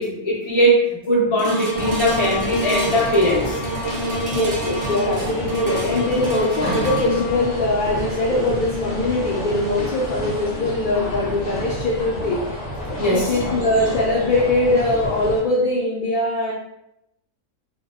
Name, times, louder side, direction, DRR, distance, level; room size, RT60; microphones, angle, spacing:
voice 1, 0.0-3.6 13.0-13.3, equal, 25° left, -5 dB, 0.9 m, -20 dB
sound 1, 1.4-11.8 12.3-12.4, equal, 55° right, 0.7 m, -28 dB
sound 2, 1.7-15.4, equal, 50° left, 0.9 m, -30 dB
voice 2, 4.3-12.4 13.1-16.5, left 2 dB, 80° left, -4 dB, 0.4 m, -22 dB
2.8 x 2.0 x 3.5 m, 0.83 s
omnidirectional pair, 1.4 m